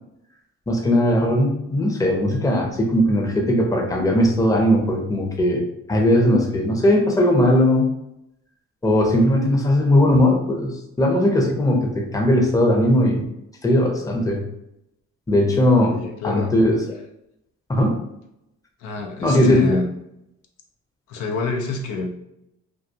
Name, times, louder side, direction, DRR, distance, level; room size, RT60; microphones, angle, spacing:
voice 1, 0.7-5.6 5.9-7.9 8.8-10.7 11.0-13.2 13.6-14.4 15.3-15.9 16.2-16.8 17.7-17.9 19.2-19.7, left 1 dB, 10° left, 0 dB, 0.6 m, -18 dB
voice 2, 15.9-16.5 18.8-19.9 21.1-22.1, left 3 dB, 90° left, 2 dB, 0.5 m, -27 dB
2.3 x 2.3 x 2.7 m, 0.83 s
cardioid pair, 90°, 30 cm